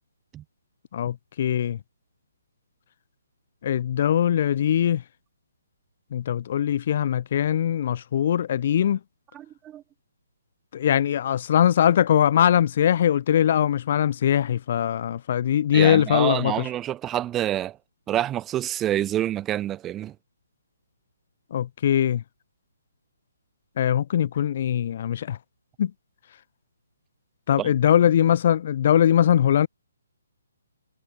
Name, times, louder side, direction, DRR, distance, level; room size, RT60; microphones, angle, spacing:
voice 1, 0.9-1.8 3.6-5.0 6.1-9.0 10.7-16.7 21.5-22.2 23.8-25.4 25.8-25.9 27.5-29.7, left 10 dB, 45° left, 0.3 m, -21 dB
voice 2, 9.3-9.8 15.7-17.8 18.1-20.1 27.6-27.7, right 12 dB, 15° right, 0.5 m, -27 dB
figure-of-eight pair, 140°, 0 cm